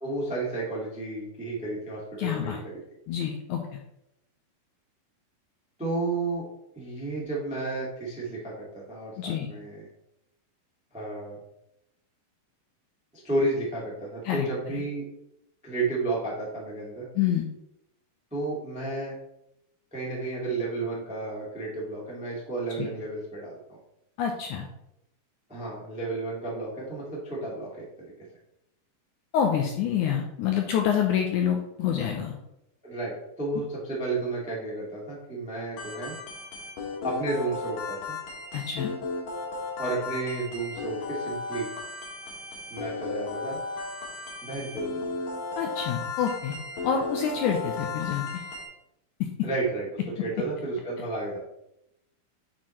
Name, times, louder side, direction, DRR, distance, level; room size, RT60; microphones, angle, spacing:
voice 1, 0.0-2.8 5.8-6.5 6.7-9.8 10.9-11.4 13.1-15.1 15.6-17.1 18.3-19.2 19.9-23.8 25.5-27.9 32.8-36.1 37.0-38.2 39.8-41.7 42.7-43.6 44.4-45.0 49.4-51.4, right 2 dB, 5° right, -5 dB, 0.8 m, -32 dB
voice 2, 2.2-2.6 3.1-3.8 9.2-9.5 14.3-14.8 17.2-17.4 22.8-22.9 24.2-24.7 29.3-32.4 38.5-38.9 45.6-46.6 46.8-48.4, left 8 dB, 80° left, 2 dB, 1.8 m, -27 dB
sound 1, 35.8-48.7, left 3 dB, 60° left, 2.9 m, -35 dB
9.5 x 4.3 x 3.1 m, 0.84 s
omnidirectional pair, 4.1 m